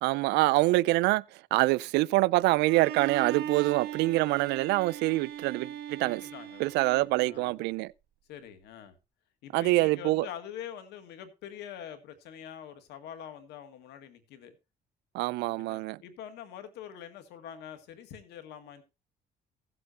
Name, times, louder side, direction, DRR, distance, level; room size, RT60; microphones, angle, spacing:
voice 1, 0.0-1.2 1.5-6.2 6.6-7.9 9.5-10.3 15.1-16.0, right 20 dB, 85° right, 0.4 m, -25 dB
Bowed string instrument, 2.6-7.6, right 10 dB, 65° right, 1.8 m, -39 dB
voice 2, 6.0-6.7 6.9-7.5 8.3-9.0 9.4-14.6 15.4-18.8, left 9 dB, 85° left, 1.9 m, -45 dB
16.5 x 7.8 x 2.8 m
cardioid pair, 110°, 17 cm